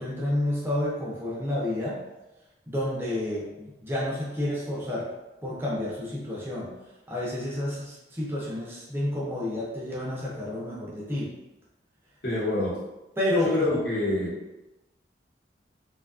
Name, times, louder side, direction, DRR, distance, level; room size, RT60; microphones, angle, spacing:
voice 1, 0.0-2.0 2.7-5.1 5.4-6.7 7.1-11.3 13.2-13.6, left 1 dB, 15° right, -6 dB, 0.4 m, -30 dB
voice 2, 12.2-12.8 13.4-14.4, left 2 dB, 60° left, -7 dB, 1.0 m, -26 dB
2.6 x 2.3 x 2.4 m, 1.0 s
head